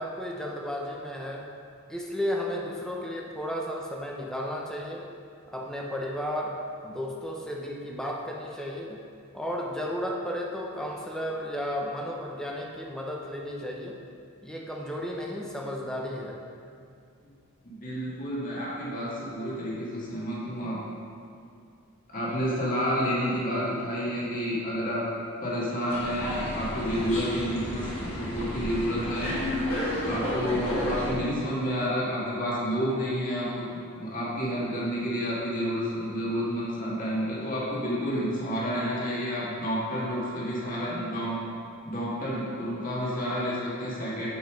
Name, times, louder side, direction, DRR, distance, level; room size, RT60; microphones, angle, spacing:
voice 1, 0.0-1.5 1.9-5.1 5.5-9.0 9.3-14.0 14.4-16.4, equal, 5° left, -1 dB, 0.7 m, -33 dB
voice 2, 17.6-20.8 22.1-25.1 25.4-29.3 30.0-33.7 34.0-41.4 41.8-44.3, equal, 40° left, -6 dB, 1.9 m, -30 dB
sound 1, 25.9-31.1, left 1 dB, 80° left, 2.0 m, -31 dB
8.0 x 5.6 x 5.1 m, 2.5 s
head